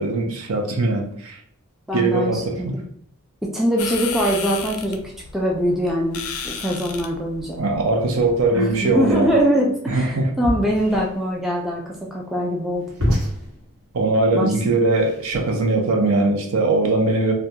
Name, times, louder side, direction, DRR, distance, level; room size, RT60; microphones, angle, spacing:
voice 1, 0.0-1.4 1.9-2.6 7.6-9.3 9.9-10.3 13.9-17.3, right 2 dB, 65° right, 3 dB, 0.5 m, -20 dB
voice 2, 1.9-2.8 3.4-5.0 5.3-7.6 8.5-12.9 14.3-14.5, equal, ahead, -3 dB, 0.3 m, -23 dB
sound 1, 3.8-9.4, left 6 dB, 75° left, 0.4 m, -34 dB
sound 2, 10.7-15.8, equal, 85° right, 1.1 m, -29 dB
2.3 x 2.1 x 2.8 m, 0.64 s
head